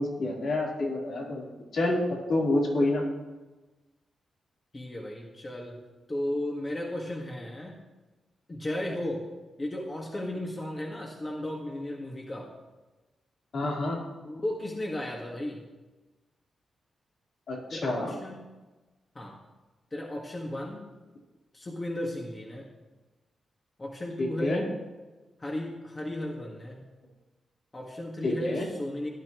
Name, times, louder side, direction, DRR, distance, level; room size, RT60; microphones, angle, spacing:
voice 1, 0.0-1.4 1.7-2.0 2.3-3.0 13.5-14.0 17.5-18.2 24.2-24.6 28.2-28.7, left 2 dB, 70° left, -4 dB, 3.8 m, -28 dB
voice 2, 4.7-5.8 6.1-7.8 8.5-9.2 9.6-12.5 14.2-15.6 17.7-18.5 19.2-19.4 19.9-20.8 21.5-22.7 23.8-24.7 25.4-26.8 27.7-29.1, left 1 dB, 25° left, -1 dB, 1.8 m, -35 dB
17.5 x 11.0 x 3.1 m, 1.2 s
cardioid pair, 90°, 0 cm